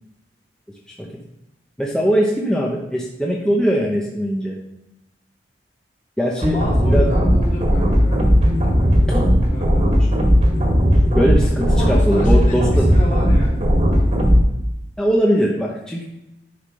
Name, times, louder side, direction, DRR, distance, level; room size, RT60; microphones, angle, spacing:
voice 1, 1.8-4.5 6.2-6.6 6.9-7.1 9.1-9.3 11.1-12.7 15.0-16.0, equal, 5° left, -4 dB, 0.9 m, -20 dB
voice 2, 6.4-8.9 9.5-10.0 11.7-13.7, equal, 45° left, -6 dB, 2.9 m, -32 dB
sound 1, 6.4-14.4, equal, 40° right, 1.9 m, -16 dB
10.0 x 5.8 x 3.2 m, 0.90 s
head